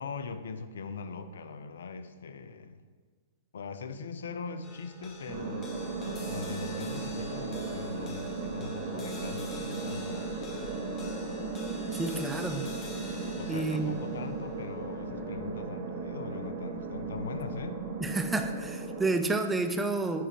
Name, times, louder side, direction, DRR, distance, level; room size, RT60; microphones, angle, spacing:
voice 1, 0.0-2.8 3.5-5.7 6.3-10.2 13.4-17.8, left 4 dB, 70° left, 10 dB, 0.4 m, -40 dB
sound 1, 4.6-17.1, left 2 dB, 25° left, 1.0 m, -48 dB
sound 2, 5.3-19.1, right 3 dB, 40° right, 1.2 m, -36 dB
voice 2, 11.9-12.7 13.5-13.9 18.0-20.3, right 3 dB, 10° right, 7 dB, 0.4 m, -30 dB
9.2 x 3.7 x 3.3 m, 1.5 s
figure-of-eight pair, 110°, 0 cm